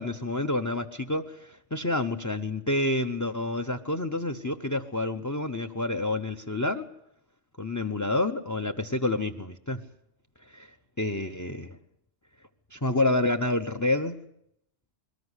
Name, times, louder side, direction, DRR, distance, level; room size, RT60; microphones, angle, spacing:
voice 1, 0.0-6.8 7.6-9.8 10.5-10.7 11.0-11.8 12.7-14.2, left 2 dB, 15° left, 9 dB, 0.7 m, -28 dB
22.0 x 19.5 x 8.1 m, 0.78 s
omnidirectional pair, 1.3 m